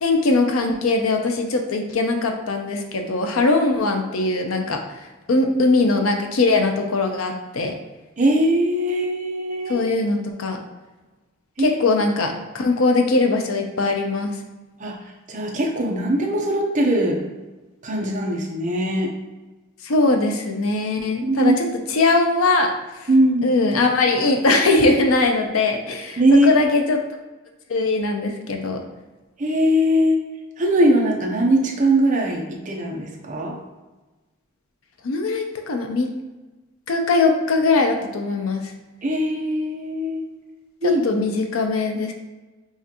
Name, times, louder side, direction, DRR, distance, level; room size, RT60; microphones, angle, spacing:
voice 1, 0.0-7.7 9.7-10.6 11.6-14.4 19.8-22.7 23.0-23.1 23.4-27.0 27.7-28.8 35.0-36.1 36.9-38.6 40.8-42.1, left 3 dB, 80° left, 4 dB, 0.6 m, -21 dB
voice 2, 8.2-9.8 11.6-11.8 14.8-15.0 15.3-17.2 17.8-19.1 21.2-21.5 23.1-23.5 26.2-26.5 29.4-30.2 30.6-33.6 39.0-40.2 40.8-41.2, equal, 40° right, 0 dB, 0.7 m, -20 dB
5.5 x 2.4 x 2.9 m, 1.2 s
head